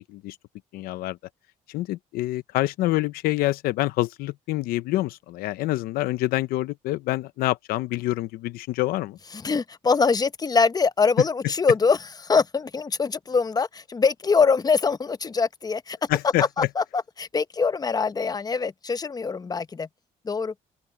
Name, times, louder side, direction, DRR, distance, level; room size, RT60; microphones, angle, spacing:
voice 1, 0.7-1.2 1.7-9.2 16.1-16.7, left 17 dB, 85° left, 0.7 m, -26 dB
voice 2, 9.4-16.0 16.6-19.9 20.2-20.5, left 5 dB, 25° left, 0.9 m, -23 dB
open air
cardioid pair, 85°, 15 cm